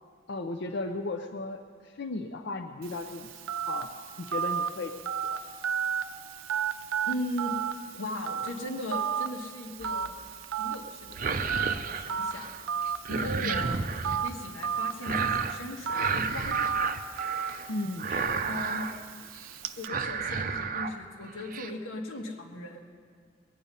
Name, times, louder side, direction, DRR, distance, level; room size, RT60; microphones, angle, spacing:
voice 1, 0.3-3.9 4.2-4.9 5.2-5.4 13.4-13.7 17.7-18.4, left 2 dB, 55° left, 6 dB, 0.5 m, -36 dB
Telephone, 2.8-19.9, right 7 dB, 85° right, 0.6 m, -34 dB
voice 2, 7.1-7.6 7.9-10.2 10.5-12.6 12.8-16.9 18.5-18.9 19.8-22.8, left 1 dB, 90° left, 2 dB, 1.6 m, -38 dB
sound 1, 9.8-10.2 11.0-12.6 12.9-14.2 15.0-15.6 15.9-17.7 18.0-19.0 19.3-19.6 19.8-20.9 21.3-21.7, right 5 dB, 40° right, 0.5 m, -32 dB
20.5 x 8.8 x 5.4 m, 2.1 s
head